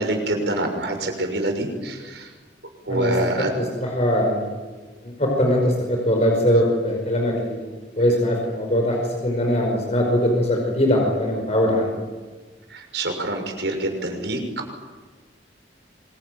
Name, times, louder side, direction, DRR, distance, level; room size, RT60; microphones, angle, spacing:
voice 1, 0.0-2.3 2.8-3.5 12.7-14.4, right 2 dB, 75° right, 4 dB, 6.3 m, -26 dB
voice 2, 3.6-4.5 5.0-11.9, equal, 35° left, 0 dB, 5.3 m, -21 dB
26.0 x 23.0 x 9.4 m, 1.4 s
head